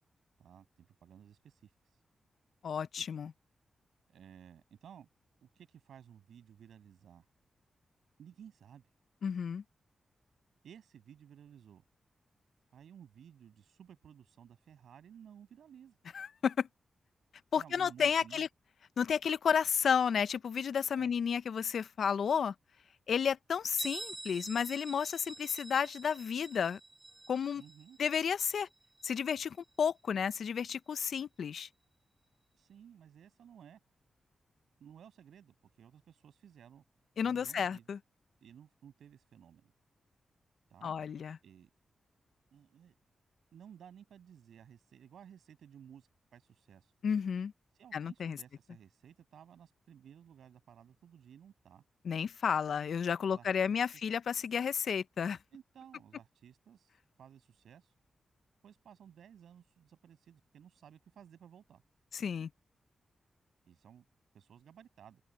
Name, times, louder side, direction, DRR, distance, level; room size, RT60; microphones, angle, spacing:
voice 1, 0.4-2.0 4.1-5.1 5.4-7.3 8.2-8.8 10.6-11.8 12.7-16.0 17.6-18.5 20.9-21.1 27.5-28.0 32.5-33.8 34.8-36.8 37.2-37.9 38.4-39.7 40.7-40.9 41.4-41.7 42.5-42.9 43.5-46.9 47.8-51.8 53.3-54.0 55.5-57.9 58.6-61.8 63.7-64.0 64.3-65.2, right 9 dB, 85° right, 7.7 m, -56 dB
voice 2, 2.6-3.3 9.2-9.6 16.1-16.7 17.5-18.5 19.0-22.5 23.1-26.8 27.3-27.6 28.0-28.7 29.0-31.7 37.2-38.0 40.8-41.4 47.0-47.5 47.9-48.4 52.0-55.4 62.1-62.5, left 7 dB, 75° left, 0.6 m, -32 dB
Bell, 23.8-29.3, right 2 dB, 25° right, 4.4 m, -47 dB
cardioid pair, 55°, 0 cm